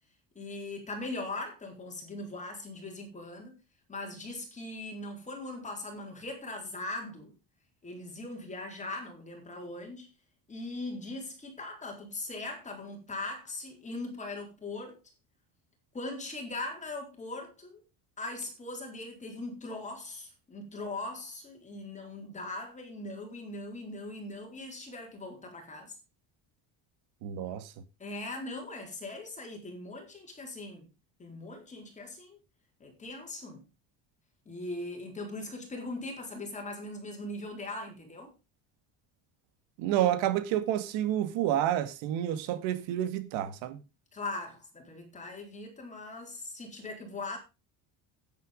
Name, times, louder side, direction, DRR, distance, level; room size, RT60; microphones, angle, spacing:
voice 1, 0.3-3.6 3.9-7.3 7.8-10.1 10.5-15.0 15.9-17.8 18.2-26.0 28.0-30.9 31.2-32.4 32.8-33.7 34.5-38.3 44.1-47.4, left 2 dB, 15° left, 4.3 m, -40 dB
voice 2, 27.2-27.7 39.8-43.8, right 11 dB, 85° right, 2.1 m, -29 dB
10.5 x 9.9 x 5.1 m
cardioid pair, 175°, 45 cm